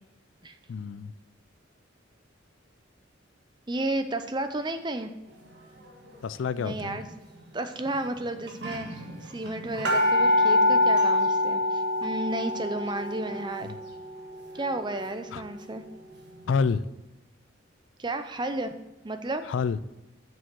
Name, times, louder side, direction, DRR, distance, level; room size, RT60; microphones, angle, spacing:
voice 1, 0.7-1.1 6.2-7.0 13.7-13.8 15.3-15.4 16.5-16.8 19.5-19.8, left 5 dB, 75° left, 0.4 m, -28 dB
voice 2, 3.7-5.1 6.6-7.0 7.5-13.7 14.5-15.8 18.0-18.7 19.0-19.4, right 2 dB, 25° right, 0.6 m, -32 dB
sound 1, 6.7-7.0 7.9-8.0 8.2-8.3 8.5-16.1 16.5-16.6, left 1 dB, 60° right, 1.5 m, -26 dB
7.0 x 6.2 x 6.2 m
head